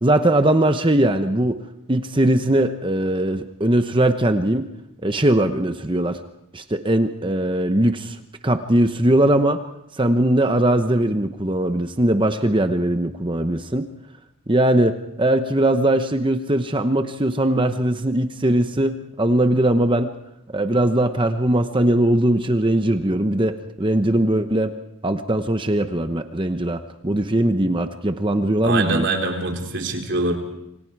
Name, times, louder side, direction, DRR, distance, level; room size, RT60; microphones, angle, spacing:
voice 1, 0.0-1.6 1.9-4.7 5.0-6.2 6.5-8.2 8.4-9.6 9.9-13.9 14.5-20.1 20.5-24.7 25.0-29.1, right 1 dB, 20° right, 8 dB, 0.9 m, -20 dB
voice 2, 28.6-30.4, right 2 dB, 50° right, 2 dB, 3.7 m, -24 dB
27.5 x 25.5 x 4.8 m, 0.82 s
head